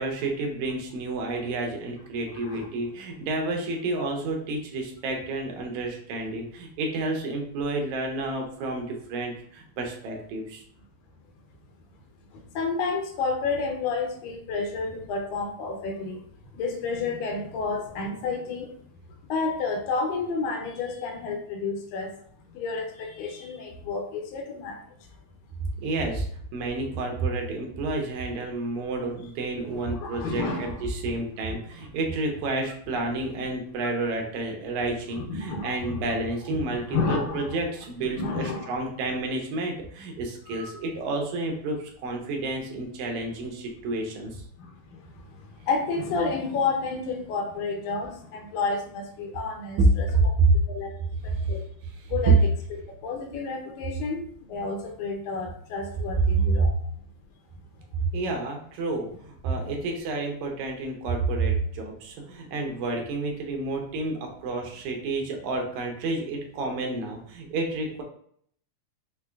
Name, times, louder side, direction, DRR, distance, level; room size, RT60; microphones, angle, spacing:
voice 1, 0.0-10.6 25.8-26.3 26.5-44.4 50.1-50.5 51.3-51.5 56.6-56.7 58.0-68.0, right 3 dB, 80° right, 2 dB, 2.0 m, -30 dB
voice 2, 2.3-2.7 10.1-10.2 12.3-16.2 16.5-18.8 19.3-22.2 22.5-24.8 29.9-31.2 31.8-31.9 35.1-36.0 36.9-37.6 38.1-38.8 40.5-40.7 44.6-45.0 45.6-50.1 50.7-50.9 51.2-51.6 52.1-52.4 52.9-54.2 54.5-56.7 59.6-59.7 62.8-62.9, left 4 dB, 85° left, 2 dB, 2.1 m, -30 dB
5.3 x 2.2 x 2.3 m, 0.62 s
omnidirectional pair, 3.4 m